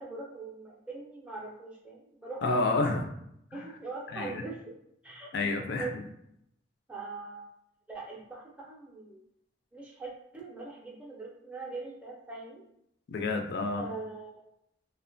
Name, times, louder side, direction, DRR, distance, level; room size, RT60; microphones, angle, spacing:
voice 1, 0.0-2.9 3.5-4.7 5.0-5.3 5.8-5.9 6.9-7.5 7.9-9.2 9.7-12.6 13.8-14.3, right 3 dB, 5° right, -3 dB, 0.4 m, -42 dB
voice 2, 2.4-3.1 4.1-4.4 5.3-5.9 13.1-13.8, left 3 dB, 55° left, 4 dB, 0.4 m, -29 dB
2.9 x 2.1 x 2.5 m, 0.75 s
head